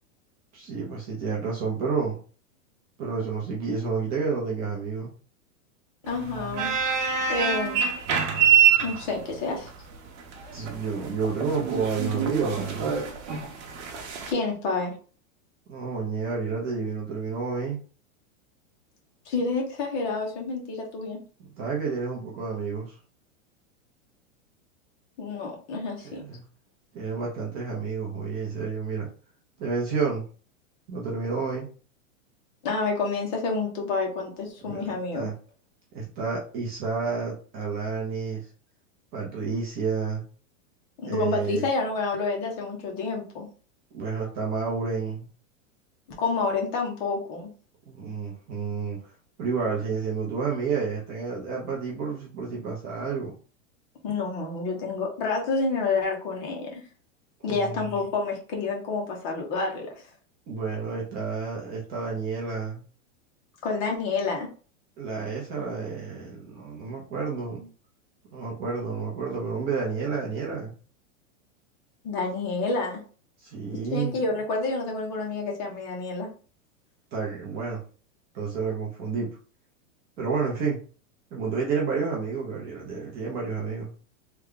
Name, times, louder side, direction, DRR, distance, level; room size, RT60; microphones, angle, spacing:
voice 1, 0.5-2.2 3.0-5.1 10.5-13.0 15.7-17.8 21.6-23.0 26.0-26.4 26.9-29.1 29.6-30.2 30.9-31.7 34.6-35.3 35.9-38.5 39.1-40.2 41.0-41.6 43.9-45.3 47.9-49.1 49.4-53.4 57.4-57.9 60.5-62.8 65.0-67.7 68.3-70.8 73.4-74.1 77.1-77.8 78.3-79.3 80.2-80.8 81.3-83.9, right 5 dB, 25° right, -3 dB, 0.6 m, -30 dB
voice 2, 6.0-6.8 7.3-7.9 8.8-9.7 14.3-14.9 19.3-21.2 25.2-26.2 32.6-35.3 41.0-43.5 46.2-47.5 54.0-56.8 57.4-59.9 63.6-64.5 72.0-73.0 73.9-76.3, left 3 dB, 35° left, 0 dB, 1.0 m, -29 dB
sound 1, 6.1-14.3, right 8 dB, 60° right, 0.9 m, -25 dB
3.4 x 2.3 x 3.6 m, 0.38 s
supercardioid pair, 165°, 40 cm